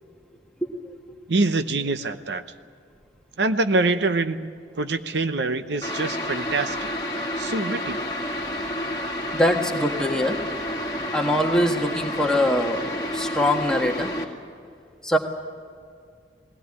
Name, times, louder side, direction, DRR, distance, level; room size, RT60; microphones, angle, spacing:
voice 1, 1.3-2.4 3.4-6.8 7.4-8.0, right 3 dB, 75° right, 10 dB, 0.8 m, -25 dB
sound 1, 5.8-14.3, left 1 dB, 20° left, 2.0 m, -30 dB
voice 2, 9.3-10.4 11.1-12.8 13.1-14.1 15.0-15.2, left 1 dB, 5° left, 1 dB, 1.5 m, -22 dB
20.0 x 17.0 x 9.7 m, 2.3 s
head